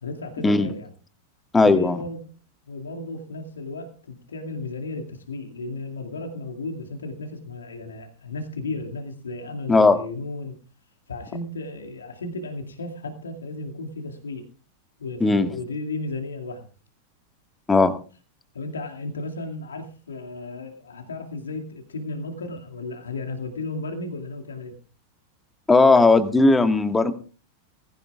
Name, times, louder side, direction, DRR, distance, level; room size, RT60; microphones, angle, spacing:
voice 1, 0.0-0.9 1.6-2.2 2.7-10.6 11.1-14.5 15.0-16.7 18.5-24.8, left 2 dB, 70° left, 3 dB, 2.3 m, -34 dB
voice 2, 1.5-2.0 9.7-10.0 15.2-15.5 17.7-17.9 25.7-27.1, left 3 dB, 10° left, 9 dB, 1.7 m, -17 dB
19.5 x 16.5 x 2.4 m, 0.37 s
figure-of-eight pair, 90°, 0 cm